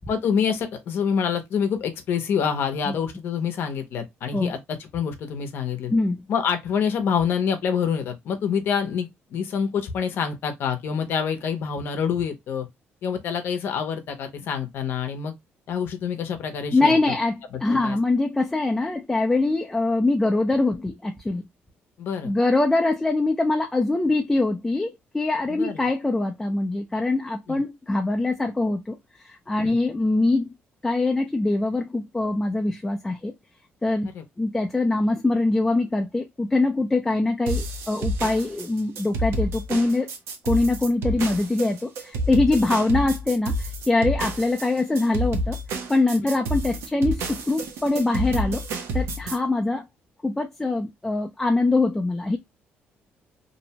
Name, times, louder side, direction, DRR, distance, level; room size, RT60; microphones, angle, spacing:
voice 1, 0.1-5.9 6.3-12.7 13.0-15.3 15.7-17.1 17.5-18.0 22.0-22.3 25.5-25.9 27.5-27.6 29.6-29.8 34.1-34.2 49.3-49.4, left 7 dB, 60° left, 0.6 m, -27 dB
voice 2, 16.7-21.4 22.2-29.0 29.2-30.5 30.8-33.3 33.8-34.1 34.4-40.1 40.5-45.6 45.9-48.6 48.9-49.9 50.2-52.4, left 2 dB, 10° left, 0.3 m, -23 dB
sound 1, 37.5-49.4, right 1 dB, 85° right, 0.6 m, -29 dB
2.6 x 2.1 x 2.7 m
cardioid pair, 165°, 4 cm